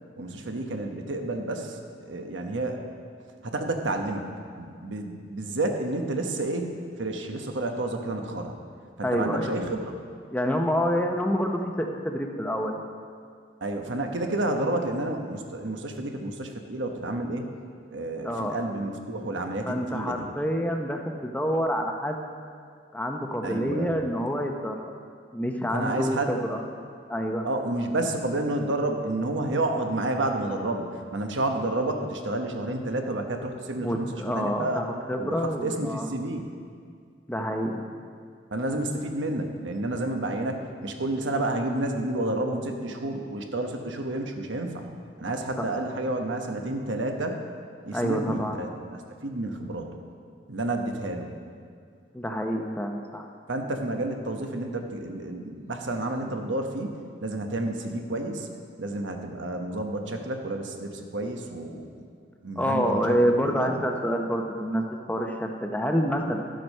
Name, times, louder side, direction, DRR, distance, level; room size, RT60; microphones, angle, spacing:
voice 1, 0.2-2.8 3.4-4.3 4.6-8.6 9.0-9.9 13.6-17.5 17.9-20.3 23.4-24.0 25.7-26.4 27.4-34.8 35.1-36.5 38.5-44.9 45.2-47.4 47.9-50.0 50.5-51.4 53.5-58.5 58.8-61.9 62.4-63.7, right 2 dB, 80° right, 4 dB, 1.1 m, -30 dB
voice 2, 9.0-9.6 10.3-12.8 18.2-18.6 19.7-22.2 22.9-24.9 25.3-26.6 27.1-27.5 33.8-36.1 37.3-37.8 45.6-45.7 47.9-48.6 52.1-53.2 62.6-66.5, equal, 10° left, 3 dB, 0.7 m, -27 dB
12.0 x 7.7 x 5.4 m, 2.2 s
head